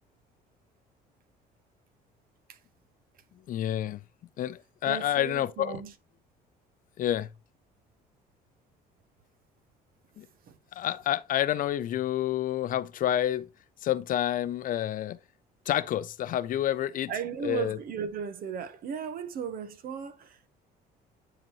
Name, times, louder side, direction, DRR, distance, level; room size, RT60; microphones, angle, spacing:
voice 1, 3.5-4.0 4.4-5.8 7.0-7.3 10.2-10.3 10.8-13.5 13.8-15.2 15.7-17.1 17.4-17.8, left 12 dB, 55° left, 0.5 m, -28 dB
voice 2, 4.8-5.9 10.4-10.6 17.1-20.5, right 7 dB, 60° right, 1.1 m, -36 dB
10.5 x 4.0 x 3.0 m
cardioid pair, 110°, 17 cm